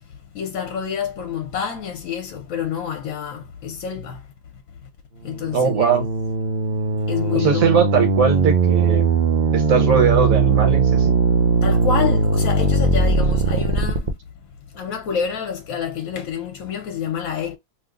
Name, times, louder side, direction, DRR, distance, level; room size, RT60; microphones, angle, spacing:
voice 1, 0.3-4.2 5.2-5.9 7.1-7.6 11.6-14.1 14.7-17.6, left 7 dB, 70° left, 1.0 m, -28 dB
sound 1, 5.3-14.1, right 4 dB, 45° right, 0.6 m, -19 dB
voice 2, 5.5-6.1 7.4-9.1 9.5-11.2, right 6 dB, 70° right, 1.4 m, -19 dB
2.9 x 2.0 x 3.6 m
omnidirectional pair, 1.5 m